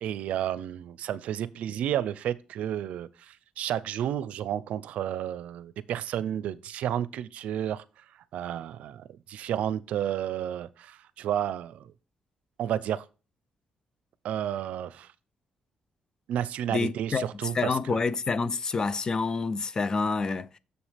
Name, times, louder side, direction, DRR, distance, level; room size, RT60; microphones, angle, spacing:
voice 1, 0.0-7.8 8.3-11.9 12.6-13.1 14.2-15.1 16.3-18.0, right 10 dB, 80° right, 0.5 m, -31 dB
voice 2, 16.7-17.3 17.5-20.6, left 4 dB, 30° left, 0.5 m, -28 dB
7.1 x 6.9 x 3.4 m
cardioid pair, 130°, 2 cm